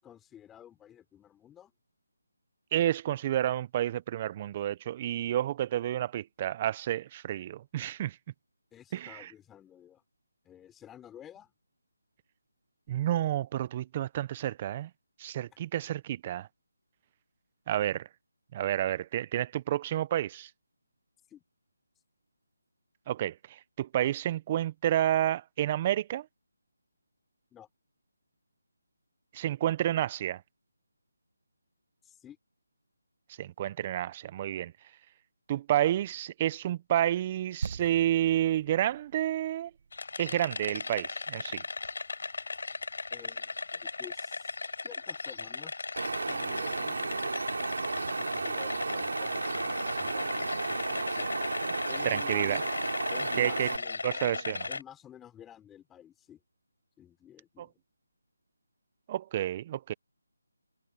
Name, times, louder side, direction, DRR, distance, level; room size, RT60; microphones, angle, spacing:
voice 1, 0.0-1.7 8.7-10.0 10.4-11.5 21.3-21.4 27.5-27.7 32.0-32.4 43.1-44.6 44.8-45.8 46.3-47.4 47.9-51.3 51.9-52.7 53.1-54.4 54.7-56.4 57.0-57.8, left 10 dB, 10° left, 4.4 m, -52 dB
voice 2, 2.7-8.2 8.9-9.2 12.9-14.9 15.2-16.5 17.7-18.1 18.5-20.5 23.1-26.3 29.3-30.4 33.4-34.7 35.5-39.7 40.2-41.6 52.0-52.6 53.4-53.7 54.0-54.7 57.6-57.7 59.1-59.9, right 12 dB, 25° right, 0.9 m, -30 dB
sound 1, 37.6-41.6 41.8-41.9, right 5 dB, 50° right, 1.4 m, -42 dB
sound 2, 39.9-54.8, left 4 dB, 65° left, 5.2 m, -37 dB
Wind, 46.0-53.8, right 3 dB, 65° right, 3.5 m, -33 dB
figure-of-eight pair, 160°, 0 cm